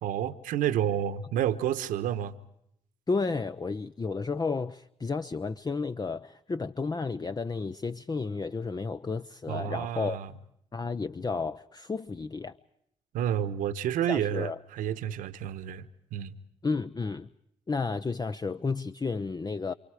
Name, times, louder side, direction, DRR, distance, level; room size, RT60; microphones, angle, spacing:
voice 1, 0.0-2.4 9.5-10.3 13.1-16.4, right 10 dB, 80° right, 1.3 m, -30 dB
voice 2, 3.1-10.2 10.7-12.6 14.1-14.6 16.6-17.3 17.7-19.7, left 4 dB, 30° left, 0.8 m, -32 dB
29.5 x 27.0 x 5.0 m
hypercardioid pair, 45°, 14 cm